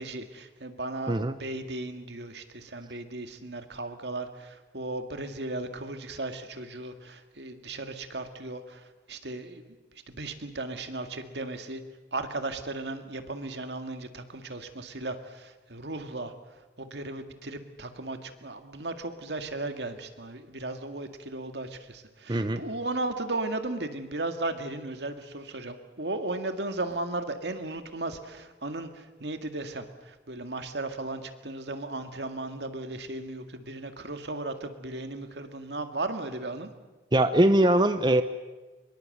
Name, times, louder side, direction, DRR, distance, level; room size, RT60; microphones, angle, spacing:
voice 1, 0.0-9.8 10.1-11.8 12.1-16.3 16.8-36.7, right 2 dB, 80° right, 7 dB, 2.1 m, -36 dB
voice 2, 22.3-22.6 37.1-38.2, right 1 dB, 25° right, 10 dB, 0.8 m, -21 dB
24.0 x 22.0 x 7.9 m, 1.2 s
head